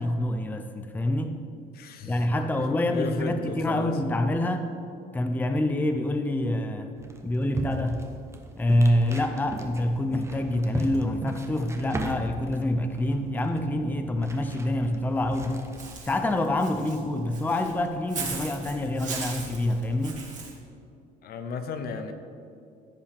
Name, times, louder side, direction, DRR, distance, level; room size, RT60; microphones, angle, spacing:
voice 1, 0.0-1.4 2.1-4.7 5.1-7.0 7.2-8.0 8.6-15.7 16.1-20.2, left 1 dB, 10° left, 7 dB, 0.5 m, -26 dB
voice 2, 1.7-2.3 2.9-3.9 21.2-22.1, left 5 dB, 65° left, 8 dB, 0.8 m, -34 dB
sound 1, 7.0-16.1, right 2 dB, 15° right, 0.9 m, -38 dB
Walk footsteps / Bird, 15.8-20.5, right 5 dB, 45° right, 2.0 m, -38 dB
15.0 x 5.4 x 3.4 m, 2.4 s
cardioid pair, 110°, 17 cm